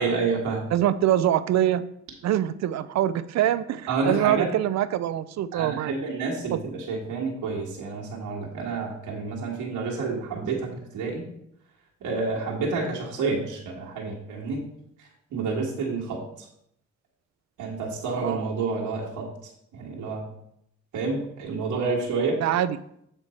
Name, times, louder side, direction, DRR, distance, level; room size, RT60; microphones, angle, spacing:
voice 1, 0.0-0.7 3.9-4.5 5.5-11.3 12.0-14.6 15.0-16.2 17.6-20.3 20.9-22.4, right 4 dB, 90° right, -3 dB, 1.7 m, -29 dB
voice 2, 0.7-1.8 2.2-5.9 6.5-6.6 18.2-18.5 22.4-22.8, right 12 dB, 60° right, 15 dB, 0.5 m, -24 dB
8.2 x 4.5 x 4.3 m, 0.74 s
cardioid pair, 90°, 30 cm